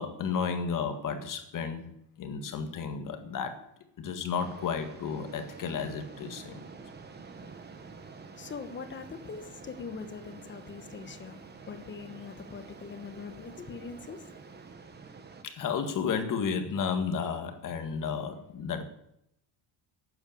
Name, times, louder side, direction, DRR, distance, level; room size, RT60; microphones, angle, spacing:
voice 1, 0.0-1.9 2.2-3.6 4.0-6.6 15.4-18.8, left 6 dB, 40° left, 7 dB, 1.9 m, -32 dB
sound 1, 4.4-15.4, right 4 dB, 20° right, 1.2 m, -48 dB
voice 2, 8.4-11.4 11.7-14.3, left 5 dB, 25° left, 10 dB, 1.2 m, -42 dB
12.5 x 9.1 x 8.7 m, 0.78 s
cardioid pair, 175°, 50 cm